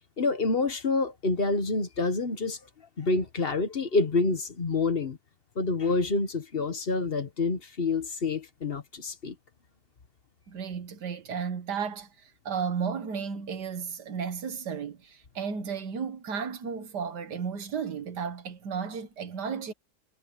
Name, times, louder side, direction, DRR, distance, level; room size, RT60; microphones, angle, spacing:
voice 1, 0.2-2.6 3.0-5.2 5.5-9.3, left 3 dB, 35° left, 1.3 m, -27 dB
voice 2, 10.5-12.1 12.5-19.7, right 6 dB, 75° right, 1.9 m, -33 dB
omnidirectional pair, 1.8 m